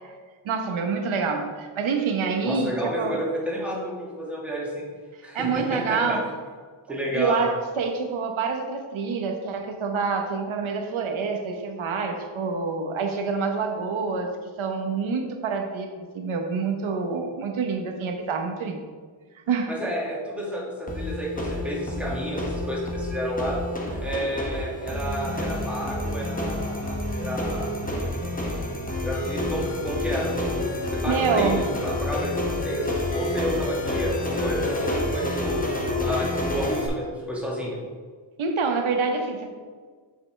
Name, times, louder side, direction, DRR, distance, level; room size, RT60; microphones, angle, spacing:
voice 1, 0.4-3.2 5.3-6.3 6.9-18.8 19.3-19.8 31.0-31.7 38.4-39.5, right 5 dB, 80° right, 4 dB, 1.1 m, -27 dB
voice 2, 2.4-4.9 5.2-6.2 6.9-7.5 19.7-23.6 24.0-27.7 29.0-32.9 33.1-35.6 36.0-37.8, equal, 5° right, -5 dB, 1.8 m, -31 dB
sound 1, 20.9-36.9, left 1 dB, 15° left, 0.9 m, -29 dB
7.0 x 6.8 x 3.3 m, 1.6 s
wide cardioid pair, 135°, 47 cm